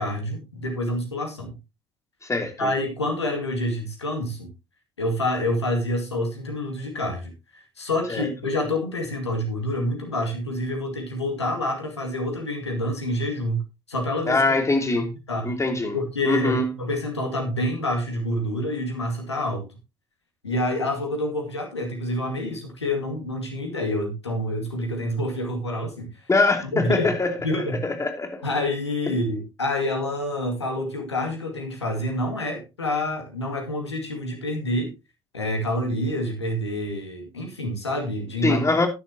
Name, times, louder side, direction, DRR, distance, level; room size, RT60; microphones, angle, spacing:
voice 1, 0.0-1.5 2.6-4.5 5.0-14.4 14.9-15.5 15.9-19.7 20.4-26.1 26.7-27.1 27.4-27.8 28.4-34.9 35.3-38.7, left 1 dB, 85° left, 2.3 m, -27 dB
voice 2, 2.2-2.7 8.1-8.3 14.3-15.1 15.4-16.0 16.2-16.7 26.3-27.4 27.7-28.4 38.4-38.9, left 3 dB, 20° left, 2.9 m, -23 dB
14.0 x 10.0 x 2.8 m
figure-of-eight pair, 55°, 14 cm